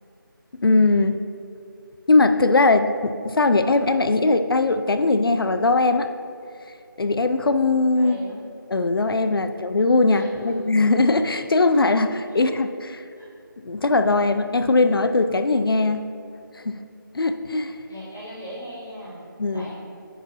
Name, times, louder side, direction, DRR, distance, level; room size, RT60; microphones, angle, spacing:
voice 1, 0.6-1.2 2.1-6.1 7.0-8.2 8.7-13.0 13.6-16.1 16.7-16.8 17.1-17.7 19.4-19.7, left 3 dB, 85° left, 9 dB, 0.4 m, -20 dB
voice 2, 7.9-8.4 10.0-10.5 13.2-13.3 17.8-19.7, equal, 5° left, -13 dB, 0.5 m, -39 dB
9.9 x 4.5 x 2.9 m, 2.5 s
figure-of-eight pair, 175°, 12 cm